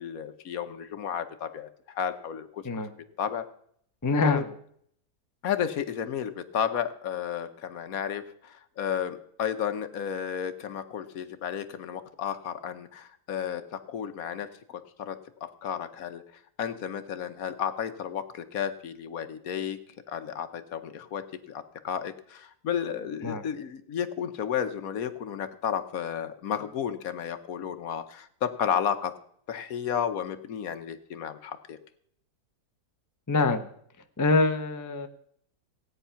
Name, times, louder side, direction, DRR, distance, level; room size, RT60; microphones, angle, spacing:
voice 1, 0.0-2.6 3.2-3.4 4.2-4.4 5.4-16.2 16.6-19.8 20.1-29.1 29.5-31.8, left 8 dB, 65° left, 10 dB, 1.3 m, -32 dB
voice 2, 4.0-4.5 23.2-23.4 33.3-33.7 34.2-35.1, left 3 dB, 20° left, 7 dB, 0.5 m, -24 dB
16.5 x 9.1 x 5.7 m, 0.66 s
omnidirectional pair, 1.8 m